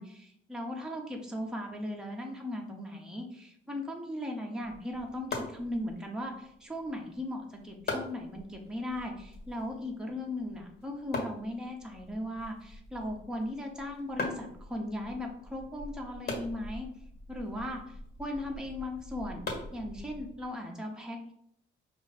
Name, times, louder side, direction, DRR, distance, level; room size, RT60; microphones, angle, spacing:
voice 1, 0.0-16.9 17.3-21.3, left 1 dB, 5° right, 0 dB, 0.8 m, -38 dB
sound 1, 4.6-20.5, left 2 dB, 55° left, 1.6 m, -43 dB
4.9 x 2.5 x 4.1 m, 0.72 s
cardioid pair, 90°, 20 cm